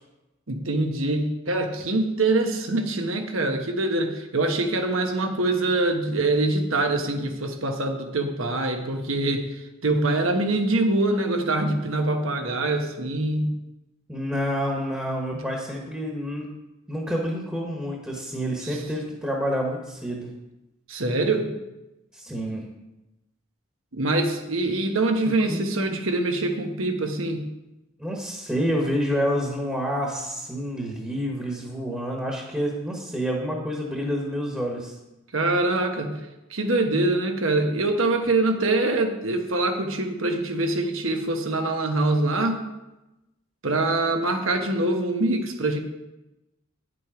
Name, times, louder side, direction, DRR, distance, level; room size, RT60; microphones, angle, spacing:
voice 1, 0.5-13.6 15.3-15.4 18.6-18.8 20.9-21.5 23.9-27.5 35.3-36.2 36.5-42.6 43.6-45.8, right 2 dB, 85° right, 4 dB, 1.2 m, -24 dB
voice 2, 14.1-16.5 16.9-20.3 22.1-22.6 25.5-25.6 28.0-34.9, equal, 5° right, -1 dB, 1.2 m, -28 dB
9.8 x 7.5 x 4.9 m, 1.0 s
head